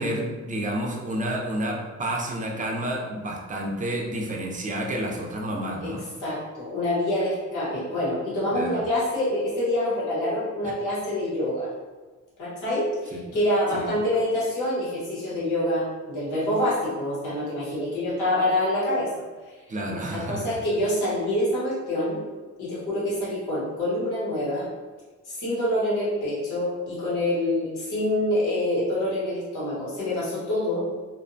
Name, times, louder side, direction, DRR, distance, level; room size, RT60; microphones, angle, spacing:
voice 1, 0.0-6.0 8.5-8.8 10.6-10.7 13.1-13.2 13.7-13.9 19.7-20.5, right 1 dB, 25° right, 0 dB, 0.5 m, -30 dB
voice 2, 6.2-11.7 12.4-19.1 19.8-22.2 22.6-24.7 25.2-30.8, left 1 dB, 85° left, -8 dB, 1.2 m, -26 dB
2.6 x 2.2 x 2.6 m, 1.3 s
cardioid pair, 90°, 30 cm